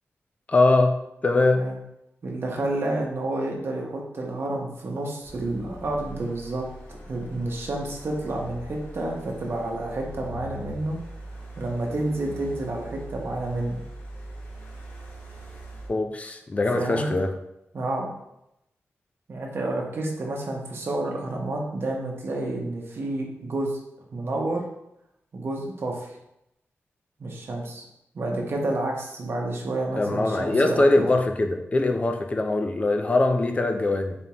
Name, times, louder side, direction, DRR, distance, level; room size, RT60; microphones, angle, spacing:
voice 1, 0.5-1.0 1.2-1.6 15.9-17.3 30.0-34.2, left 2 dB, 30° left, 5 dB, 0.5 m, -22 dB
voice 2, 2.2-11.0 11.5-13.8 16.7-17.1 17.7-18.1 19.3-23.8 24.1-24.7 25.3-26.2 27.2-27.8 28.1-31.1, right 2 dB, 55° right, 0 dB, 0.9 m, -29 dB
sound 1, 5.2-15.9, equal, 45° left, 1.5 m, -42 dB
4.2 x 3.5 x 2.9 m, 0.83 s
wide cardioid pair, 115°, 5 cm